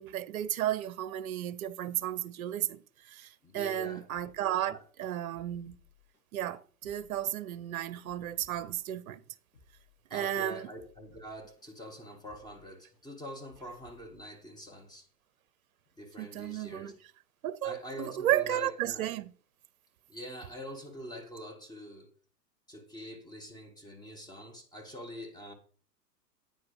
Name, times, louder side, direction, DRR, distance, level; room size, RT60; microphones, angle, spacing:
voice 1, 0.0-5.8 6.3-9.2 10.1-10.7 16.2-16.9 17.4-19.3, right 12 dB, 55° right, 0.7 m, -33 dB
voice 2, 3.4-4.1 4.7-4.8 10.1-15.1 16.0-16.9 17.6-19.1 20.1-22.1 22.7-25.5, equal, 10° left, 1.3 m, -45 dB
sound 1, 4.1-4.9 5.3-6.2 6.7-7.6 8.0-8.9 9.4-10.3 10.7-11.7 12.1-13.0 13.5-14.4 14.8-14.9, left 5 dB, 90° left, 4.2 m, -62 dB
9.4 x 9.0 x 3.2 m
figure-of-eight pair, 110°, 50 cm